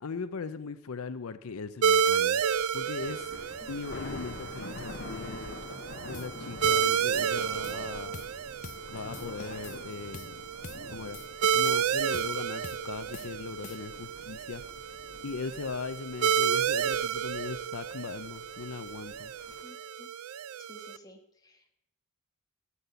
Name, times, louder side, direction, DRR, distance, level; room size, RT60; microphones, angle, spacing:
voice 1, 0.0-2.4 2.7-3.3 3.7-5.6 6.0-8.2 8.9-10.5 10.9-11.2 11.5-14.6 15.2-19.3, left 4 dB, 75° left, 12 dB, 0.6 m, -39 dB
Thunder, 1.8-19.6, left 2 dB, 60° left, 1.3 m, -47 dB
sound 1, 1.8-21.0, right 8 dB, 75° right, 0.4 m, -31 dB
sound 2, 6.1-6.4 6.6-6.9 7.1-7.8 8.1-8.4 8.6-8.9 9.1-9.8 10.1-10.4 10.6-10.9 11.1-11.8 12.1-12.4 12.6-12.9 13.1-14.0, left 5 dB, 35° left, 0.5 m, -46 dB
voice 2, 19.6-20.1 20.6-21.7, left 1 dB, 20° left, 3 dB, 1.6 m, -53 dB
13.0 x 8.3 x 6.9 m, 0.80 s
head